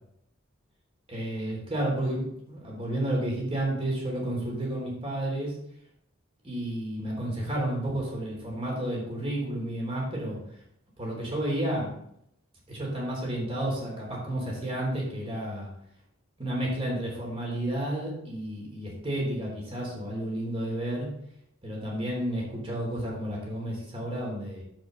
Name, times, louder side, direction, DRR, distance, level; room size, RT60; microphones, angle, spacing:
voice 1, 1.1-5.5 6.4-10.4 11.0-11.9 12.7-15.7 16.4-21.1 21.6-24.6, right 1 dB, 30° right, -2 dB, 3.3 m, -31 dB
10.0 x 7.5 x 3.9 m, 0.74 s
head